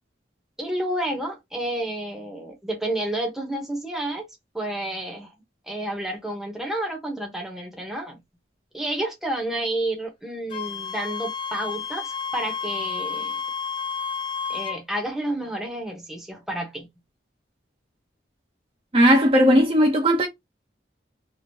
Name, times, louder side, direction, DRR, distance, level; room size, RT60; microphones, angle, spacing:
voice 1, 0.6-4.2 4.5-5.3 5.6-8.2 8.7-13.4 14.5-16.9, right 1 dB, ahead, 0.9 m, -30 dB
Wind instrument woodwind instrument, 10.5-14.8, left 7 dB, 25° left, 0.6 m, -31 dB
voice 2, 18.9-20.3, equal, 30° right, 0.6 m, -17 dB
3.1 x 2.6 x 2.7 m
head